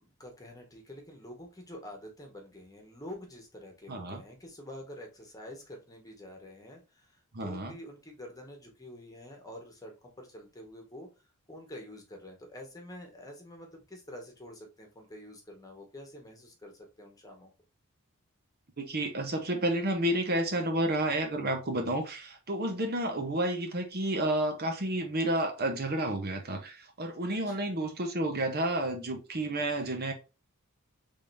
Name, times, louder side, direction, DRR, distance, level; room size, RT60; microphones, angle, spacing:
voice 1, 0.2-11.1 11.5-17.5 27.3-27.7, left 1 dB, 15° left, 1.3 m, -47 dB
voice 2, 3.9-4.2 7.3-7.7 18.8-30.1, right 1 dB, 45° right, 0.9 m, -30 dB
5.1 x 3.6 x 2.6 m
head